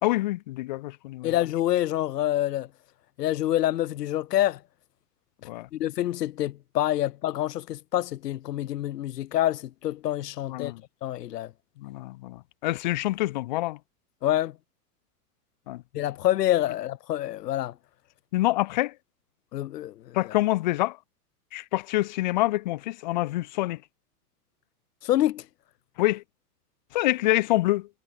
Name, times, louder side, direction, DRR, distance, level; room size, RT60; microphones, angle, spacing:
voice 1, 0.0-1.3 5.4-5.7 10.5-10.8 11.8-13.8 15.7-15.8 18.3-18.9 20.1-21.0 21.5-23.8 26.0-26.2 26.9-27.9, left 18 dB, 30° left, 0.5 m, -26 dB
voice 2, 1.2-2.7 3.2-4.6 5.7-10.7 11.0-11.5 14.2-14.5 15.9-17.7 19.5-20.3 25.0-25.4, left 13 dB, 85° left, 1.1 m, -27 dB
supercardioid pair, 160°, 47 cm